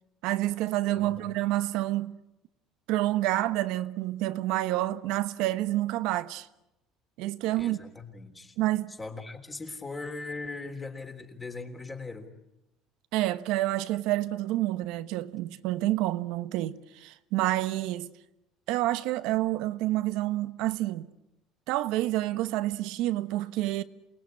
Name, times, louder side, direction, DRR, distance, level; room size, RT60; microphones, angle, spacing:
voice 1, 0.2-2.1 2.9-6.5 7.2-7.8 8.6-8.9 13.1-18.1 18.7-21.1 21.7-23.8, right 16 dB, 80° right, 1.2 m, -28 dB
voice 2, 1.0-1.3 7.6-8.6 9.0-12.3, left 3 dB, 15° left, 3.6 m, -39 dB
28.0 x 19.5 x 9.7 m
cardioid pair, 135°, 0 cm